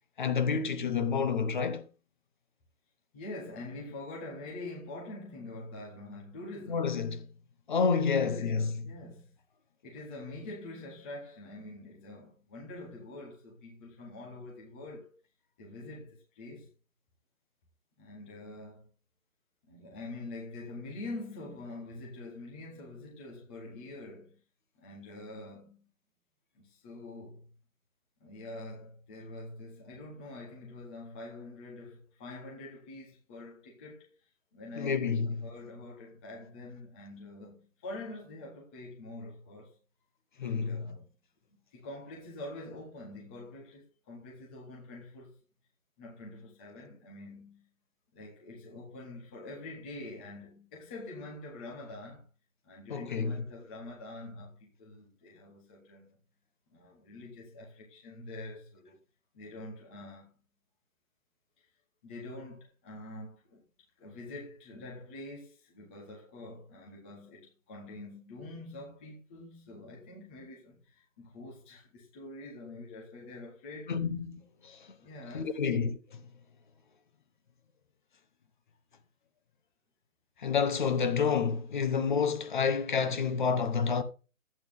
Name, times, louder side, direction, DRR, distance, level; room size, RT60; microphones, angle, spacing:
voice 1, 0.2-1.9 6.7-7.2 7.7-8.7 34.8-35.3 40.4-40.9 52.9-53.4 73.9-74.9 75.3-76.2 80.4-84.0, left 6 dB, 35° left, 1.1 m, -29 dB
voice 2, 3.1-7.0 7.9-9.3 9.8-15.1 15.6-16.7 18.0-18.9 19.7-24.4 24.8-25.8 26.5-27.5 28.2-39.8 40.4-41.1 41.7-45.4 46.0-47.7 48.1-52.3 52.6-56.1 56.7-59.0 59.3-60.3 61.6-61.7 62.0-63.6 64.0-74.0 75.0-75.5, left 2 dB, 10° left, 0.8 m, -45 dB
12.5 x 8.7 x 3.5 m
hypercardioid pair, 170°, 42 cm